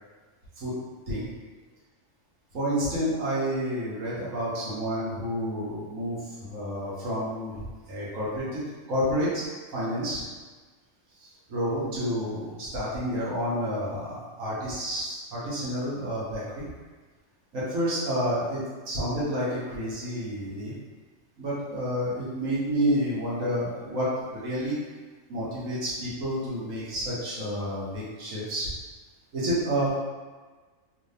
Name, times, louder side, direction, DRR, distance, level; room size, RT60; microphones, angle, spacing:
voice 1, 2.5-7.5 7.8-8.6 8.9-9.4 9.7-10.2 11.2-16.6 17.5-18.6 18.9-20.7 21.4-24.8 25.3-28.7 29.3-30.0, equal, 80° right, -9 dB, 1.5 m, -29 dB
3.3 x 2.7 x 3.3 m, 1.4 s
omnidirectional pair, 1.4 m